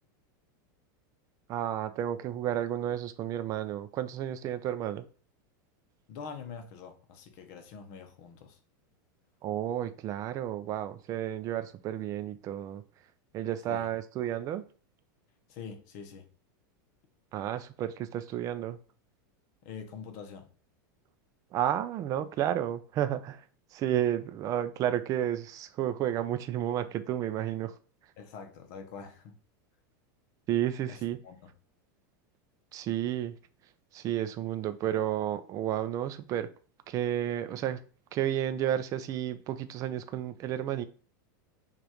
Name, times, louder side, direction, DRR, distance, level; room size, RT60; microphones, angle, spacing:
voice 1, 1.5-5.0 9.4-12.8 13.3-14.6 17.3-18.8 21.5-23.4 23.7-27.7 30.5-31.2 32.7-33.4 33.9-36.5 36.9-37.8 38.1-40.8, right 11 dB, 30° right, 0.4 m, -31 dB
voice 2, 6.1-8.6 13.7-13.9 15.5-16.3 19.6-20.5 28.2-29.3 30.9-31.5, left 6 dB, 50° left, 0.9 m, -45 dB
5.1 x 2.5 x 3.0 m
supercardioid pair, 140°, 11 cm